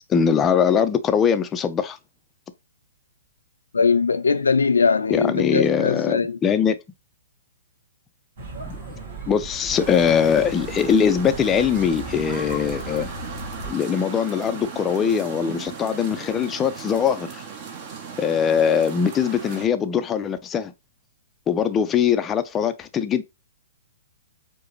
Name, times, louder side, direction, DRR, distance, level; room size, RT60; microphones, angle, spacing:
voice 1, 0.0-2.0 5.1-6.8 8.6-8.9 9.3-13.1 13.7-17.4 18.2-20.7 21.5-23.2, left 7 dB, 20° left, 0.4 m, -21 dB
voice 2, 3.7-6.4, left 5 dB, 90° left, 0.4 m, -20 dB
sound 1, 8.4-13.7, right 2 dB, 60° right, 1.5 m, -36 dB
sound 2, 9.7-19.7, right 6 dB, 40° right, 0.8 m, -37 dB
4.7 x 2.0 x 3.0 m
hypercardioid pair, 130°, 0 cm